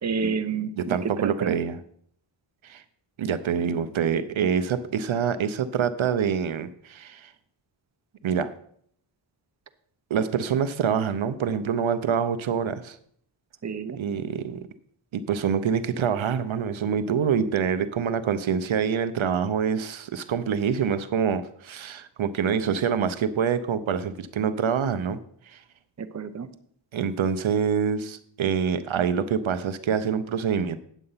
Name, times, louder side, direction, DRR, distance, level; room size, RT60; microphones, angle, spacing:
voice 1, 0.0-1.6 13.6-14.0 26.0-26.5, right 5 dB, 35° right, 9 dB, 0.7 m, -29 dB
voice 2, 0.8-1.8 2.6-2.8 3.2-7.3 8.2-8.5 10.1-13.0 14.0-14.7 15.1-25.2 25.5-25.6 26.9-30.8, right 7 dB, 75° right, 12 dB, 0.7 m, -26 dB
9.2 x 7.7 x 5.6 m, 0.64 s
wide cardioid pair, 95°, 48 cm